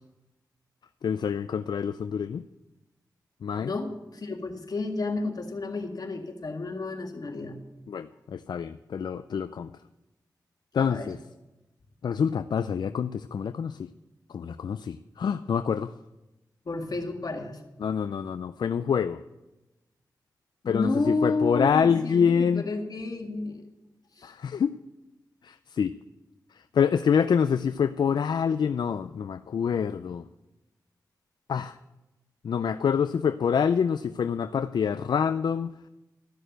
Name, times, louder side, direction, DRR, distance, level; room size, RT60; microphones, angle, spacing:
voice 1, 1.0-2.4 3.4-3.7 7.9-9.7 10.7-11.2 12.0-13.9 14.3-15.9 17.8-19.2 20.7-22.6 24.2-24.7 25.4-25.9 26.7-30.2 31.5-31.8 32.4-35.7, left 7 dB, 80° left, 12 dB, 0.4 m, -26 dB
voice 2, 3.6-7.6 10.7-11.1 16.7-17.6 20.6-23.7 24.2-24.3, left 3 dB, 60° left, 3 dB, 1.9 m, -31 dB
13.0 x 6.6 x 9.1 m, 1.0 s
cardioid pair, 65°, 7 cm